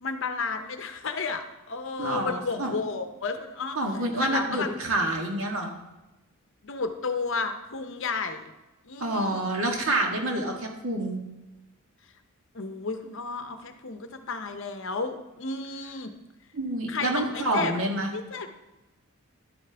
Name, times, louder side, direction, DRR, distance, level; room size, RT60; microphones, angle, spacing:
voice 1, 0.0-3.8 4.2-4.7 6.6-8.5 8.9-9.5 12.5-16.1 16.9-17.7 18.1-18.5, left 4 dB, 55° left, 7 dB, 0.7 m, -32 dB
voice 2, 2.0-2.7 3.8-5.8 9.0-11.2 16.5-18.1, right 1 dB, 70° right, 1 dB, 1.6 m, -28 dB
11.0 x 8.5 x 3.4 m, 1.1 s
head